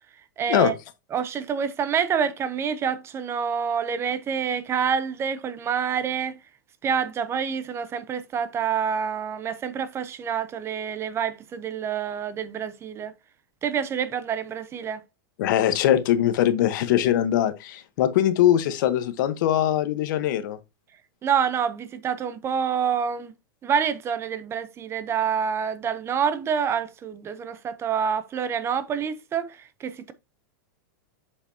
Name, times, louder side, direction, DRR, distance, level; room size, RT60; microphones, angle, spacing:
voice 1, 0.4-0.7 1.1-6.4 6.8-13.1 13.6-15.0 21.2-23.3 23.6-30.1, right 7 dB, 20° right, 0.6 m, -27 dB
voice 2, 15.4-20.6, left 11 dB, 60° left, 1.0 m, -22 dB
7.4 x 5.1 x 2.7 m
supercardioid pair, 140°, 11 cm